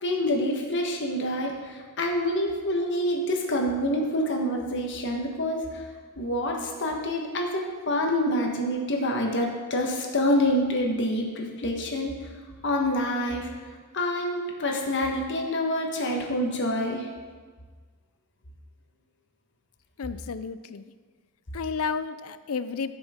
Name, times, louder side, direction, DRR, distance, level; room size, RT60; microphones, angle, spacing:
voice 1, 0.0-5.8 6.2-12.1 12.6-13.5 13.9-17.1, left 1 dB, 55° left, 1 dB, 1.3 m, -27 dB
voice 2, 20.0-20.9 21.5-23.0, left 5 dB, 70° left, 13 dB, 0.5 m, -32 dB
15.5 x 6.3 x 3.7 m, 1.5 s
head